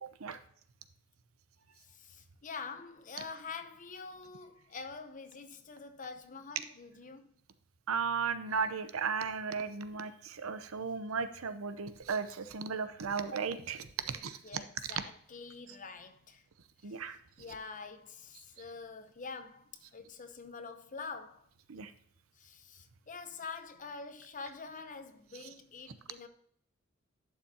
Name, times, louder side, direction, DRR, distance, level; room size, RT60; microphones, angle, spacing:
voice 1, 0.0-0.4 7.9-14.4 16.8-17.2 21.7-21.9, right 5 dB, 80° right, 0.7 m, -35 dB
voice 2, 1.8-7.3 14.1-16.4 16.8-17.0 17.4-21.5 22.3-26.3, left 4 dB, 40° left, 0.8 m, -46 dB
11.0 x 6.7 x 2.8 m
head